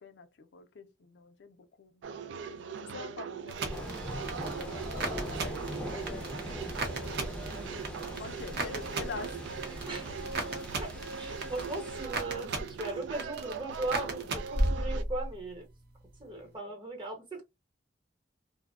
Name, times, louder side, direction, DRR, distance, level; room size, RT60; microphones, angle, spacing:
voice 1, 0.0-3.9 4.2-5.0 5.4-5.6 5.9-7.6 8.2-9.5 16.3-16.6, left 4 dB, 70° left, 0.4 m, -47 dB
sound 1, 2.0-15.0, right 6 dB, 85° right, 0.3 m, -41 dB
sound 2, 3.5-15.4 15.7-16.3, right 2 dB, 60° right, 0.7 m, -36 dB
sound 3, 3.7-12.1, equal, 5° left, 0.5 m, -41 dB
voice 2, 4.9-5.4 6.1-6.2 9.9-10.2 10.8-15.7 16.2-17.4, right 2 dB, 30° right, 0.9 m, -38 dB
2.6 x 2.1 x 2.4 m
head